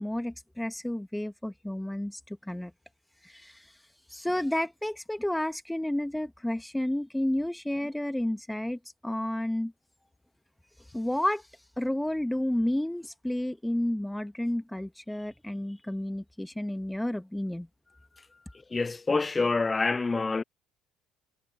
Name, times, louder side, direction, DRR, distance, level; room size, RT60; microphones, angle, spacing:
voice 1, 0.0-2.7 3.2-3.6 4.1-9.7 10.9-11.4 11.8-17.7, left 1 dB, 5° left, 2.4 m, -31 dB
voice 2, 18.7-20.4, left 3 dB, 25° left, 0.8 m, -26 dB
hypercardioid pair, 60°, 0 cm